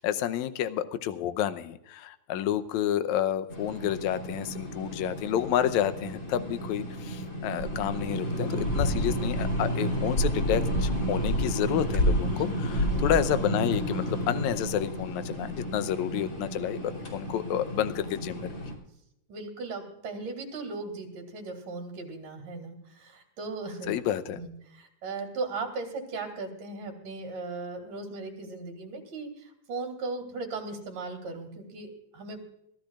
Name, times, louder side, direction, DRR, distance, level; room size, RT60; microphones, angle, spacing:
voice 1, 0.0-18.5 23.9-24.4, left 10 dB, 75° left, 11 dB, 1.9 m, -30 dB
sound 1, 3.5-18.7, equal, 25° left, 3.1 m, -30 dB
voice 2, 12.3-13.1 19.3-23.9 24.4-32.4, right 3 dB, 75° right, 3 dB, 4.6 m, -37 dB
24.0 x 14.5 x 2.4 m, 0.80 s
omnidirectional pair, 3.7 m